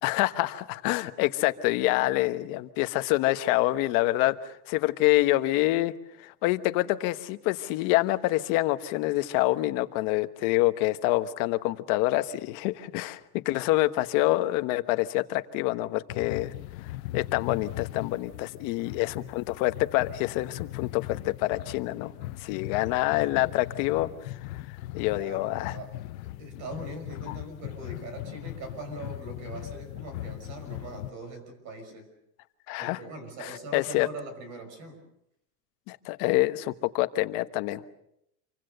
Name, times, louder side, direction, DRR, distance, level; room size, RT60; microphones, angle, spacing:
voice 1, 0.0-5.9 6.2-13.2 13.4-16.5 17.1-22.1 22.4-24.4 24.7-25.8 27.3-27.4 32.7-33.0 33.4-34.1 35.9-37.9, left 17 dB, 40° left, 10 dB, 1.2 m, -26 dB
sound 1, 16.1-31.1, left 16 dB, 60° left, 1.0 m, -39 dB
voice 2, 25.1-32.1 32.8-35.0, right 2 dB, 35° right, 8 dB, 5.8 m, -42 dB
27.5 x 24.5 x 6.7 m, 0.79 s
supercardioid pair, 165°, 47 cm